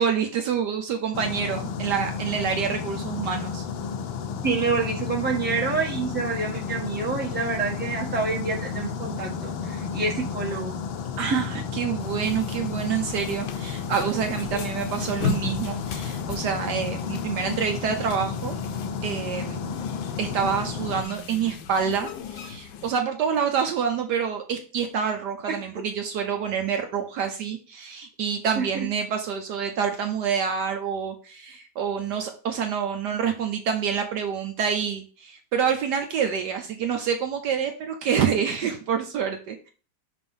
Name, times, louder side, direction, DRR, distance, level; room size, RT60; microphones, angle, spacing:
voice 1, 0.0-3.6 11.2-18.6 19.0-19.8 20.2-39.7, right 7 dB, 70° right, 4 dB, 1.2 m, -27 dB
sound 1, 1.1-21.0, left 6 dB, 90° left, 1.5 m, -32 dB
voice 2, 4.4-10.7 11.3-11.4 14.5-14.6 25.5-25.6 28.6-28.9, right 4 dB, 5° right, -2 dB, 0.9 m, -27 dB
sound 2, 12.0-22.9, left 5 dB, 70° left, 1.2 m, -37 dB
5.9 x 3.3 x 5.4 m, 0.38 s
omnidirectional pair, 2.1 m